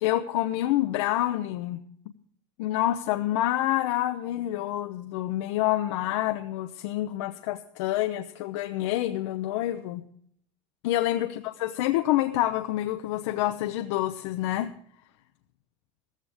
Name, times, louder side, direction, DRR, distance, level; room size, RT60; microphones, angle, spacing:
voice 1, 0.0-1.8 2.6-10.0 10.8-14.7, left 14 dB, 85° left, 7 dB, 0.9 m, -27 dB
15.0 x 15.0 x 3.5 m, 0.63 s
cardioid pair, 155°, 15 cm